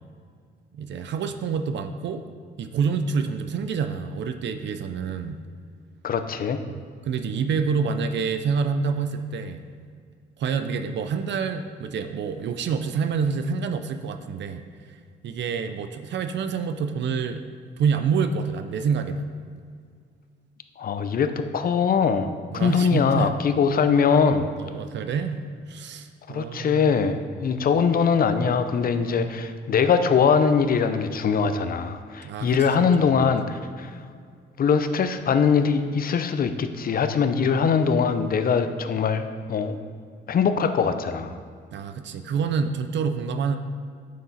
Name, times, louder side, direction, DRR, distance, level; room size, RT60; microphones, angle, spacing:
voice 1, 0.7-2.2 2.6-5.4 7.0-9.6 10.4-14.6 15.2-17.4 17.8-19.3 22.5-23.3 24.6-25.4 25.7-26.9 32.2-33.4 41.7-43.6, right 5 dB, 65° right, 8 dB, 0.6 m, -27 dB
voice 2, 6.0-6.6 20.8-22.3 22.5-24.4 26.3-33.9 34.6-39.8 40.3-41.4, left 6 dB, 45° left, 9 dB, 0.7 m, -22 dB
8.8 x 6.6 x 4.2 m, 2.1 s
cardioid pair, 90°, 20 cm